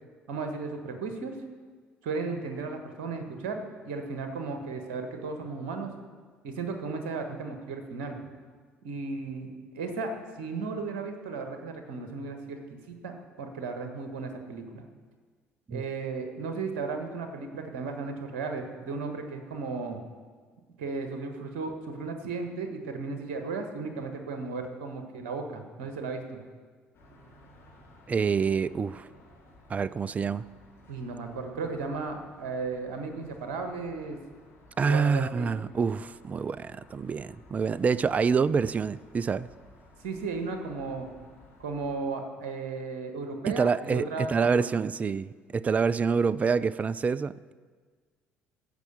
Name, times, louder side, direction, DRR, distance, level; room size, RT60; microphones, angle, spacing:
voice 1, 0.3-1.4 2.0-5.9 6.4-8.2 8.8-14.8 15.7-20.0 20.8-26.4 30.9-34.2 34.8-35.5 40.0-41.1 41.6-44.7, right 4 dB, 65° right, 1.3 m, -35 dB
sound 1, 26.9-42.0, left 1 dB, 45° left, 3.7 m, -56 dB
voice 2, 28.1-29.1 29.7-30.5 34.8-39.5 43.5-47.5, right 5 dB, 25° right, 0.3 m, -27 dB
15.0 x 5.6 x 6.8 m
figure-of-eight pair, 50°, 6 cm